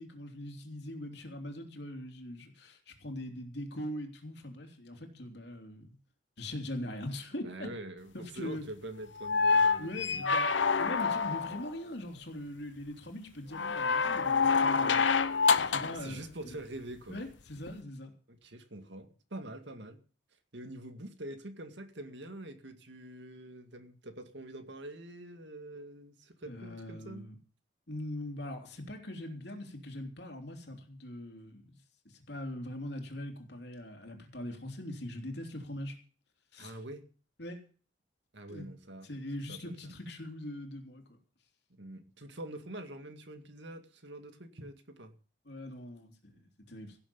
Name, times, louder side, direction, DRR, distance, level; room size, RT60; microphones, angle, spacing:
voice 1, 0.0-5.9 6.4-7.7 8.1-8.6 9.8-15.0 15.6-16.5 17.1-18.1 26.5-27.4 27.9-31.6 32.0-36.0 36.5-36.8 37.4-37.6 38.5-38.7 39.0-41.2 45.4-47.0, left 1 dB, 65° left, 3.2 m, -42 dB
voice 2, 7.4-10.2 15.9-17.2 18.3-20.0 20.5-27.3 36.6-37.0 38.3-39.1 39.5-39.9 41.7-45.1, right 1 dB, 70° right, 2.1 m, -45 dB
sound 1, 9.2-11.7 13.5-16.0 17.7-17.8, left 5 dB, 80° left, 0.9 m, -27 dB
16.5 x 7.8 x 7.0 m
head